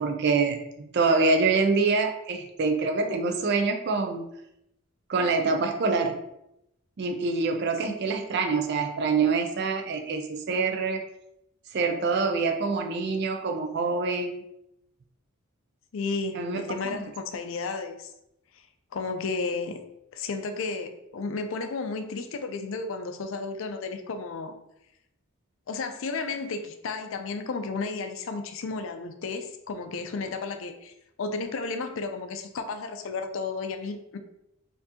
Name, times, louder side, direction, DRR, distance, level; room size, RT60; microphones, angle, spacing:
voice 1, 0.0-4.3 5.1-6.2 7.0-11.0 11.7-14.4 16.3-16.6 16.9-17.1, right 4 dB, 50° right, 4 dB, 0.3 m, -25 dB
voice 2, 15.9-18.1 18.9-19.8 20.1-24.5 25.7-30.9 31.2-34.2, left 4 dB, 65° left, 7 dB, 0.4 m, -33 dB
4.3 x 2.6 x 2.8 m, 0.81 s
head